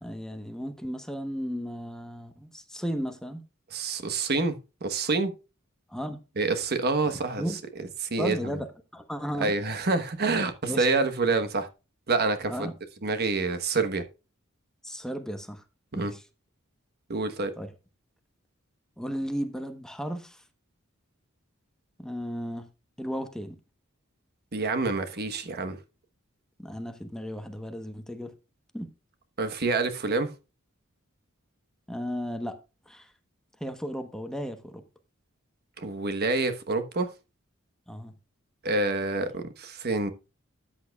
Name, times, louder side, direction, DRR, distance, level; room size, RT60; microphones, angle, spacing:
voice 1, 0.0-3.4 5.9-6.2 7.1-7.6 8.2-8.7 8.9-9.5 10.7-10.9 12.5-12.7 14.8-15.6 15.9-16.2 17.6-17.7 19.0-20.4 22.0-22.7 23.0-23.6 26.6-28.3 28.7-28.9 31.9-32.6 32.9-33.1 33.6-34.8 37.9-38.1, equal, 5° left, 1.0 m, -34 dB
voice 2, 3.7-4.5 4.8-5.3 6.4-7.4 8.0-8.5 9.4-11.7 12.1-12.7 13.0-14.0 15.9-16.1 17.1-17.5 24.5-25.8 29.4-30.3 35.8-37.1 38.6-40.1, right 3 dB, 50° right, 1.1 m, -27 dB
13.5 x 8.6 x 2.3 m
head